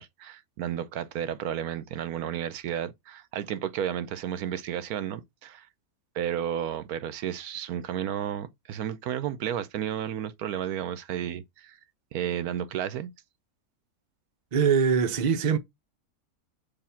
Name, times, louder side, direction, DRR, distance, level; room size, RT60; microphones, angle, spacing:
voice 1, 0.0-5.7 6.1-11.8 12.1-13.1, right 10 dB, 80° right, 1.2 m, -32 dB
voice 2, 14.5-15.6, right 6 dB, 40° right, 0.7 m, -22 dB
6.9 x 3.2 x 5.6 m
omnidirectional pair, 1.6 m